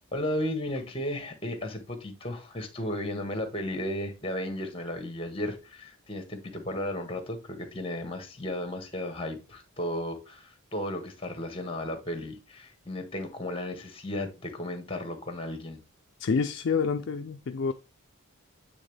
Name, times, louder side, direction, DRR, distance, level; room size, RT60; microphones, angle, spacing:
voice 1, 0.1-15.8, left 1 dB, 25° left, 1.4 m, -34 dB
voice 2, 16.2-17.7, left 5 dB, 55° left, 0.4 m, -28 dB
8.8 x 3.5 x 3.3 m
head